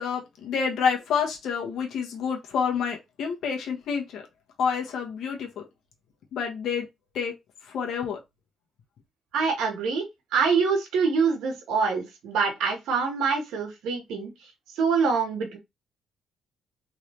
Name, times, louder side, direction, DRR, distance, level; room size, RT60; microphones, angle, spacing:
voice 1, 0.0-4.2 4.6-5.6 6.3-6.9 7.1-7.3 7.7-8.2, left 6 dB, 75° left, 1.2 m, -28 dB
voice 2, 9.3-10.0 10.3-14.3 14.8-15.6, right 5 dB, 85° right, 1.4 m, -25 dB
3.6 x 3.3 x 3.1 m
cardioid pair, 90°, 0 cm